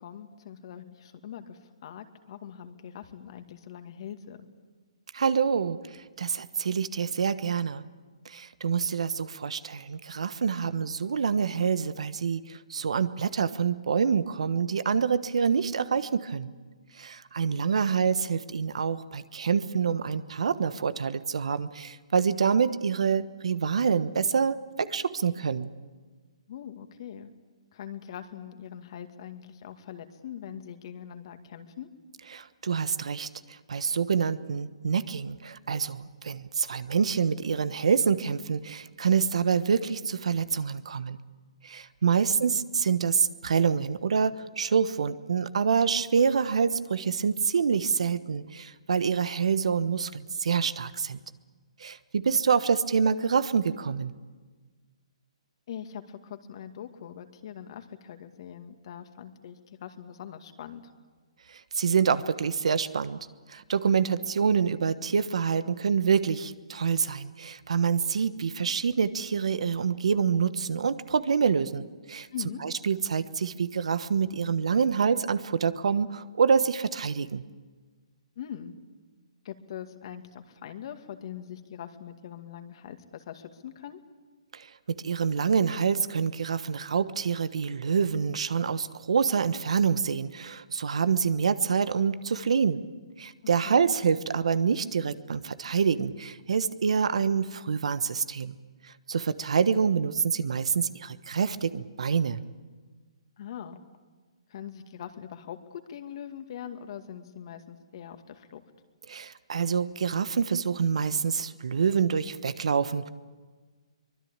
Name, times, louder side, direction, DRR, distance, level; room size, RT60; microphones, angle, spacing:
voice 1, 0.0-4.5 26.5-27.3 27.7-31.9 42.5-42.6 55.7-60.8 72.3-72.6 78.4-78.7 79.4-84.0 93.7-93.8 103.4-103.8 104.5-108.6, left 9 dB, 50° left, 7 dB, 2.2 m, -42 dB
voice 2, 5.1-5.8 6.2-7.8 8.2-16.5 17.0-25.7 32.3-41.2 41.6-51.2 51.8-54.1 61.8-63.2 63.5-72.3 72.6-77.4 84.5-84.7 85.0-92.8 93.2-98.5 99.1-102.4 109.1-113.1, right 6 dB, 75° right, 14 dB, 1.2 m, -26 dB
24.0 x 21.5 x 8.9 m, 1.4 s
hypercardioid pair, 145°, 3 cm